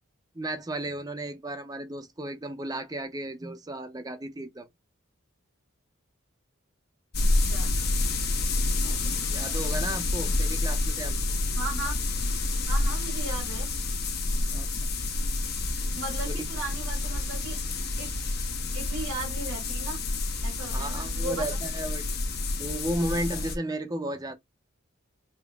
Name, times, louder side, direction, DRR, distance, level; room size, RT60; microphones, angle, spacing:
voice 1, 0.4-4.7 8.8-11.2 14.5-14.9 15.9-16.0 16.2-16.5 20.7-22.0 22.6-24.3, right 1 dB, 20° right, 0.5 m, -34 dB
sound 1, 7.1-23.6, left 2 dB, 50° left, 0.8 m, -28 dB
voice 2, 7.2-7.7 11.5-12.0 12.7-13.7 15.7-17.6 18.0-18.1 18.7-20.0 20.4-21.5, right 3 dB, 90° right, 2.0 m, -37 dB
5.0 x 2.8 x 2.3 m
head